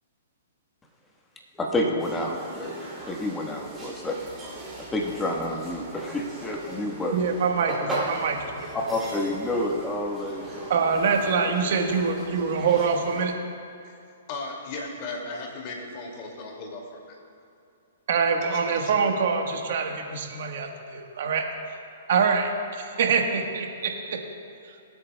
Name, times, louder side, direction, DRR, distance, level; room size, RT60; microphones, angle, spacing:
voice 1, 1.5-4.2 4.9-7.2 8.7-10.7, left 1 dB, 10° left, 0 dB, 1.3 m, -29 dB
sound 1, 2.0-13.2, right 1 dB, 10° right, 2.8 m, -38 dB
voice 2, 7.1-8.5 10.7-13.3 18.1-21.5 22.1-22.5 22.8-24.2, right 5 dB, 60° right, 3 dB, 1.4 m, -25 dB
voice 3, 14.3-17.2 18.4-18.9, left 3 dB, 40° left, 0 dB, 2.3 m, -37 dB
25.0 x 8.5 x 2.3 m, 2.6 s
hypercardioid pair, 145°, 0 cm